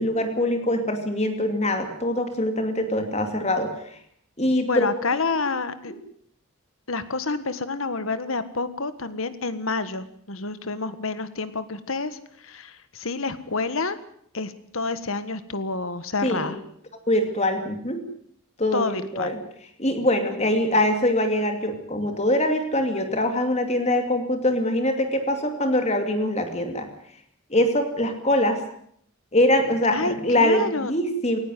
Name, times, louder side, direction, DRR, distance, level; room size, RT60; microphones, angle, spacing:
voice 1, 0.0-3.7 4.4-4.9 5.3-5.4 16.2-16.5 17.1-18.0 18.6-19.4 19.8-26.9 27.5-28.6 29.3-31.4, left 1 dB, 30° left, 6 dB, 2.5 m, -23 dB
voice 2, 4.6-5.9 6.9-14.0 14.3-16.6 18.7-19.3 20.1-20.4 29.9-30.9, left 3 dB, 75° left, 13 dB, 1.6 m, -29 dB
18.5 x 17.0 x 9.3 m, 0.67 s
head